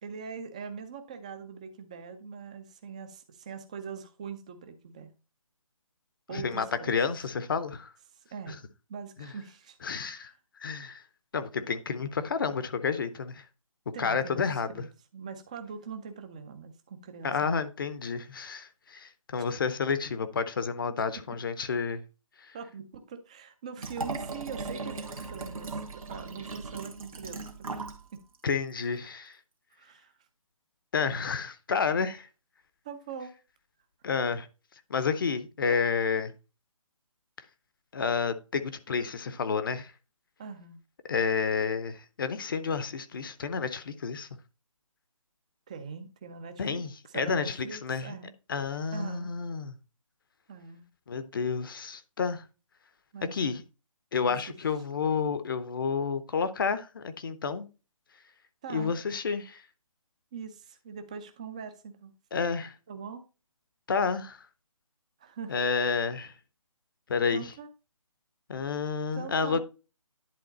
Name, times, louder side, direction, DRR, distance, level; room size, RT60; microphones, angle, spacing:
voice 1, 0.0-5.1 6.3-6.9 8.3-8.6 8.9-9.8 10.1-10.3 13.9-14.4 14.7-14.9 15.1-17.6 19.4-19.5 20.8-21.0 21.3-21.4 22.5-27.8 28.1-28.2 29.0-29.2 29.8-30.1 32.8-33.3 35.7-35.8 40.4-40.8 45.7-48.3 48.9-49.3 50.5-50.8 53.1-53.5 54.2-54.5 58.6-58.9 60.3-62.1 62.9-63.2 65.2-65.5 67.3-67.7 69.1-69.6, right 6 dB, 10° right, 0.4 m, -42 dB
voice 2, 6.3-7.9 8.5-8.6 9.2-9.3 9.8-10.3 10.6-11.0 11.3-13.4 14.0-14.8 17.2-22.0 22.4-22.6 28.4-29.4 30.9-32.3 34.0-34.5 34.9-36.3 37.9-39.9 41.1-44.3 46.6-48.2 48.5-49.8 51.1-52.5 53.3-53.6 54.1-57.7 58.7-59.6 62.3-62.7 63.9-64.4 65.5-66.3 67.1-67.5 68.5-69.6, left 5 dB, 40° left, 0.6 m, -30 dB
Liquid, 23.8-28.0 28.3-28.4, right 3 dB, 80° right, 1.7 m, -38 dB
10.5 x 3.7 x 3.9 m
figure-of-eight pair, 160°, 18 cm